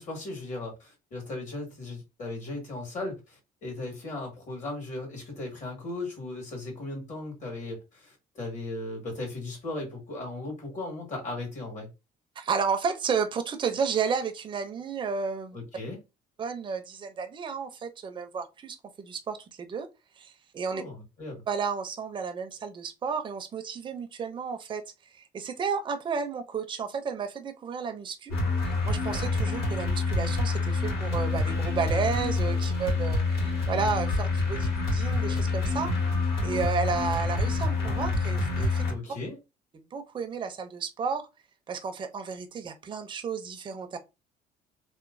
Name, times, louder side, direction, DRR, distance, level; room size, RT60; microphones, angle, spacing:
voice 1, 0.0-11.9 15.5-16.0 20.7-21.4 38.9-39.4, left 2 dB, 45° left, 1.6 m, -37 dB
voice 2, 12.4-15.6 16.4-19.9 20.2-20.8 21.5-24.8 25.3-28.4 28.8-38.8 39.9-41.3 41.7-44.0, right 5 dB, 30° right, 0.5 m, -32 dB
sound 1, 28.3-38.9, left 3 dB, 70° left, 1.8 m, -27 dB
3.0 x 2.1 x 2.5 m
cardioid pair, 110°, 17 cm